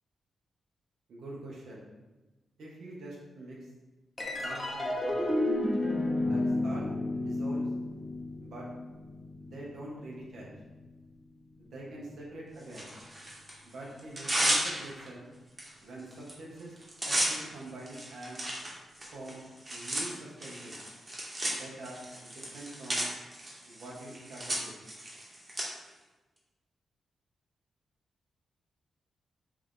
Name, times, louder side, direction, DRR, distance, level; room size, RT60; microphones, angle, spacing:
voice 1, 1.1-1.8 2.6-3.7 4.4-5.3 6.3-6.9 7.1-7.7 8.4-8.7 9.4-10.5 11.6-12.9 13.6-15.3 15.8-16.8 17.0-18.4 19.1-20.8 21.5-23.1 23.7-24.7, right 1 dB, 80° right, -4 dB, 0.8 m, -45 dB
sound 1, 4.2-10.9, left 1 dB, 30° left, 0.8 m, -32 dB
Tearing, 12.7-13.5 14.0-15.1 15.6-15.7 16.0-16.3 16.6-25.6, right 1 dB, 30° right, 1.1 m, -34 dB
3.4 x 2.4 x 3.6 m, 1.1 s
cardioid pair, 65°, 0 cm